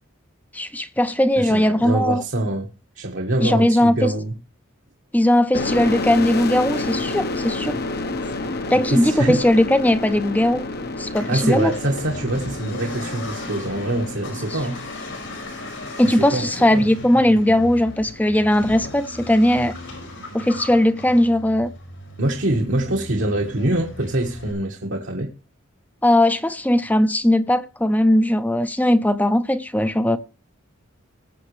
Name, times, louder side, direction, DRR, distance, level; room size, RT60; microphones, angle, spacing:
voice 1, 0.5-2.2 3.4-4.1 5.1-7.8 8.7-10.6 11.0-11.7 16.0-19.8 20.3-21.7 26.0-30.2, left 1 dB, 10° left, 0.7 m, -18 dB
voice 2, 1.4-2.7 2.9-4.3 8.9-9.4 11.3-14.8 16.1-16.8 22.2-25.3, right 1 dB, 65° right, 1.5 m, -24 dB
sound 1, 5.5-19.0, left 2 dB, 50° left, 1.0 m, -30 dB
Accelerating revving vroom, 11.0-24.5, left 1 dB, 80° left, 5.0 m, -37 dB
21.0 x 7.1 x 3.2 m
head